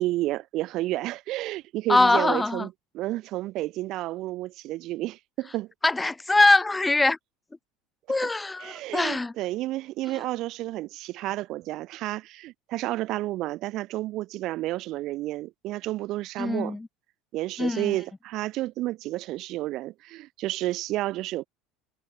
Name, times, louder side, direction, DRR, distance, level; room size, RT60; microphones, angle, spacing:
voice 1, 0.0-2.7 2.9-5.7 8.6-16.7 17.3-21.5, right 17 dB, 55° right, 2.9 m, -31 dB
voice 2, 1.9-2.7 5.8-7.2 8.1-9.3 10.2-10.3 16.4-16.9 17.6-18.0, left 2 dB, 15° left, 2.3 m, -22 dB
hypercardioid pair, 75°, 0 cm